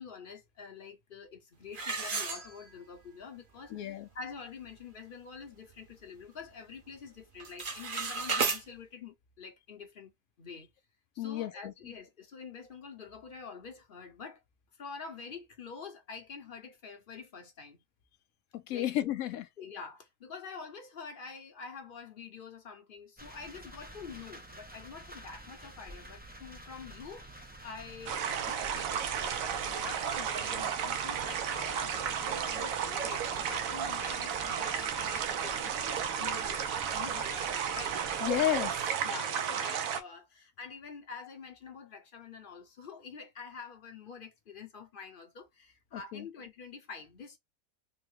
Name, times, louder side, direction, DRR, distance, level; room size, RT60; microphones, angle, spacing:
voice 1, 0.0-10.1 10.4-10.7 11.1-14.4 14.8-17.8 18.7-18.9 19.6-27.3 27.6-35.8 36.2-36.6 36.9-38.0 39.0-47.4, left 5 dB, 45° left, 0.8 m, -47 dB
sound 1, 1.7-3.0 3.5-3.6 4.1-4.2 4.6-4.9 5.4-6.5 6.7-7.1 7.3-8.6, right 5 dB, 45° right, 0.9 m, -34 dB
voice 2, 3.7-4.1 11.2-11.9 18.5-19.5 38.2-38.7 45.9-46.3, left 12 dB, 80° left, 1.0 m, -32 dB
sound 2, 23.2-38.8, right 1 dB, 10° right, 0.4 m, -49 dB
sound 3, 28.1-40.0, right 8 dB, 75° right, 1.0 m, -33 dB
3.8 x 2.2 x 3.1 m
omnidirectional pair, 1.5 m